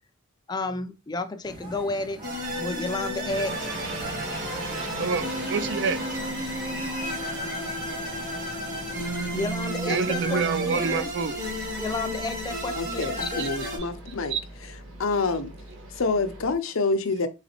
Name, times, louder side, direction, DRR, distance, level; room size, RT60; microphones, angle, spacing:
voice 1, 0.5-2.2 2.6-3.8 9.3-11.1 11.8-13.5, left 2 dB, 20° left, 0.4 m, -31 dB
sound 1, 1.4-9.5, equal, 25° right, 1.1 m, -42 dB
sound 2, 2.2-13.8, equal, 40° right, 1.6 m, -32 dB
sound 3, 3.2-16.6, right 1 dB, 75° right, 1.2 m, -40 dB
voice 2, 5.0-6.5 8.5-8.7 9.9-11.4 13.0-13.5 13.8-14.5 15.1-15.2 15.8-16.0, right 5 dB, 55° right, 0.4 m, -29 dB
voice 3, 12.8-14.3 15.0-15.5 16.0-17.3, left 3 dB, 70° left, 0.6 m, -27 dB
4.0 x 3.1 x 2.9 m
head